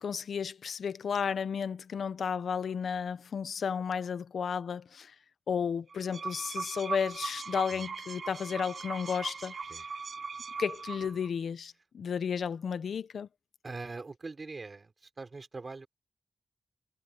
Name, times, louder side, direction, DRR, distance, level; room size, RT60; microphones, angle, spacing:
voice 1, 0.0-5.1 5.5-9.5 10.6-13.3, left 6 dB, 80° left, 0.9 m, -33 dB
sound 1, 5.9-11.3, right 5 dB, 50° right, 0.7 m, -39 dB
voice 2, 13.6-15.9, right 3 dB, 30° right, 4.5 m, -42 dB
wide cardioid pair, 180°, 0 cm